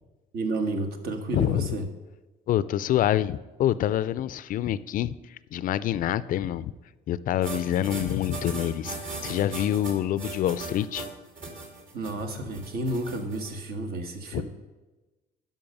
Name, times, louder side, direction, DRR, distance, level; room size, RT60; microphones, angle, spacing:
voice 1, 0.3-1.9 11.9-14.4, right 2 dB, 65° right, 6 dB, 1.4 m, -31 dB
voice 2, 1.3-1.8 2.5-6.7 7.1-11.1 14.3-14.4, left 11 dB, 55° left, 17 dB, 0.4 m, -26 dB
sound 1, 7.4-13.5, right 3 dB, 50° right, 2.5 m, -38 dB
12.0 x 5.5 x 5.4 m, 1.2 s
cardioid pair, 110°, 17 cm